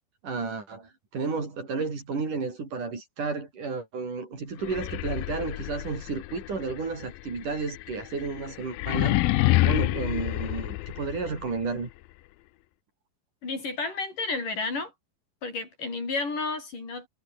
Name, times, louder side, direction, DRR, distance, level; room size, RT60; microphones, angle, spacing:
voice 1, 0.2-9.2 9.6-11.9, right 4 dB, 60° right, 7.2 m, -32 dB
sound 1, 4.6-11.5, left 18 dB, 85° left, 2.6 m, -28 dB
voice 2, 13.4-14.9 15.4-17.1, left 3 dB, 65° left, 9.3 m, -31 dB
omnidirectional pair, 4.0 m